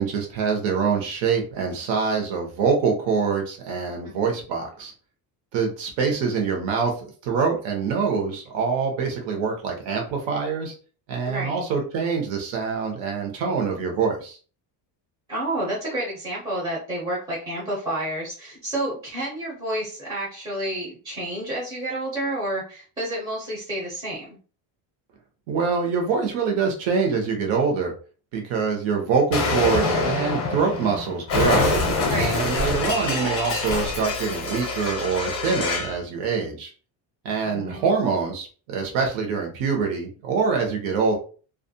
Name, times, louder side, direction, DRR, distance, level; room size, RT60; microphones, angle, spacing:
voice 1, 0.0-4.9 5.5-10.7 11.1-14.4 25.5-27.9 28.3-31.7 32.1-36.7 37.2-41.1, right 5 dB, 70° right, 1 dB, 0.9 m, -25 dB
voice 2, 11.3-11.6 15.3-24.4 32.0-32.4 37.4-37.9, right 1 dB, 10° right, -6 dB, 0.5 m, -30 dB
Explosion, 29.3-36.0, left 3 dB, 30° left, 0.6 m, -25 dB
2.4 x 2.1 x 2.6 m, 0.38 s
cardioid pair, 180°, 46 cm